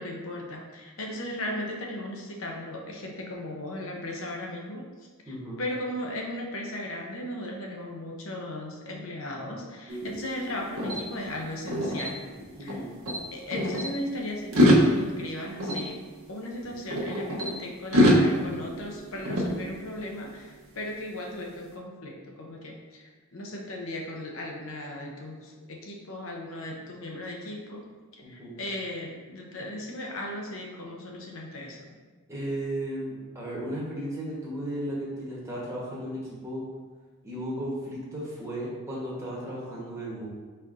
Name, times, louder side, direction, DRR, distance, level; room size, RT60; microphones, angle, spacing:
voice 1, 0.0-4.8 5.2-12.2 12.6-12.8 13.3-16.0 16.3-27.8 28.1-31.9, left 1 dB, 65° left, 0 dB, 0.7 m, -37 dB
voice 2, 5.3-5.6 12.6-12.9 28.2-28.6 32.3-36.6 37.2-40.3, right 1 dB, 15° right, -6 dB, 1.0 m, -35 dB
sound 1, 9.9-12.8 13.1-13.9 14.4-17.5 17.9-20.2, equal, 75° right, 0.8 m, -26 dB
4.2 x 4.1 x 2.5 m, 1.4 s
head